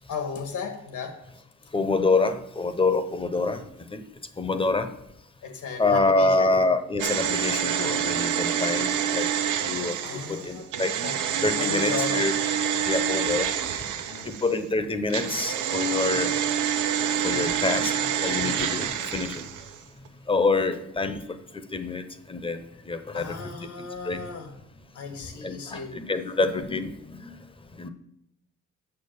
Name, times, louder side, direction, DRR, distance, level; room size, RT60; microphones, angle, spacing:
voice 1, 0.1-1.2 5.4-6.6 10.0-10.7 11.0-11.2 11.6-12.3 14.1-14.3 16.0-16.2 23.1-24.6 24.9-26.0, left 5 dB, 75° left, 5 dB, 1.9 m, -35 dB
voice 2, 1.7-3.6 3.9-4.0 4.4-4.9 5.8-9.3 9.6-10.9 11.4-12.4 12.8-13.5 14.2-16.3 17.2-17.9 18.2-19.4 20.3-21.2 21.7-24.2 25.4-27.4 27.7-27.9, left 3 dB, 15° left, 10 dB, 0.8 m, -26 dB
sound 1, 7.0-14.6 15.1-19.8 20.1-20.2, right 8 dB, 80° right, 0.8 m, -27 dB
6.8 x 6.1 x 7.1 m, 0.81 s
cardioid pair, 90°, 30 cm